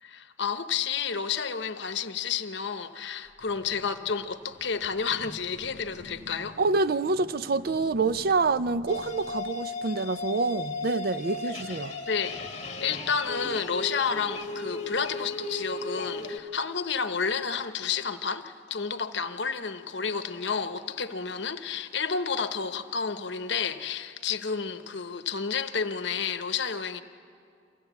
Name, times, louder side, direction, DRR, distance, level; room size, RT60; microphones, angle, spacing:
voice 1, 0.0-6.6 12.1-12.3 12.8-27.0, left 6 dB, 65° left, 0.9 m, -30 dB
sound 1, 3.2-9.5, equal, 75° right, 7.1 m, -50 dB
voice 2, 6.6-11.9, right 3 dB, 50° right, 0.5 m, -27 dB
sound 2, 8.9-16.4, left 3 dB, 35° left, 1.6 m, -36 dB
24.5 x 16.0 x 8.2 m
head